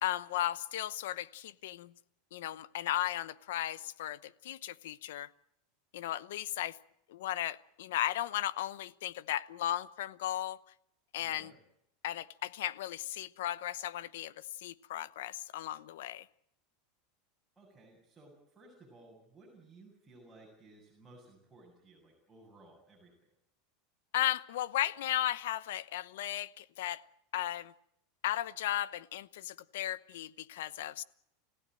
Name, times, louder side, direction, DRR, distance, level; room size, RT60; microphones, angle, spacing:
voice 1, 0.0-1.9 2.3-5.3 5.9-6.8 7.1-10.6 11.1-11.5 12.0-16.2 24.1-27.0 27.3-27.7 28.2-31.0, left 13 dB, 80° left, 0.9 m, -35 dB
voice 2, 11.2-11.6 17.6-23.1, right 2 dB, 10° right, 7.4 m, -58 dB
28.5 x 16.0 x 7.7 m
supercardioid pair, 145°, 0 cm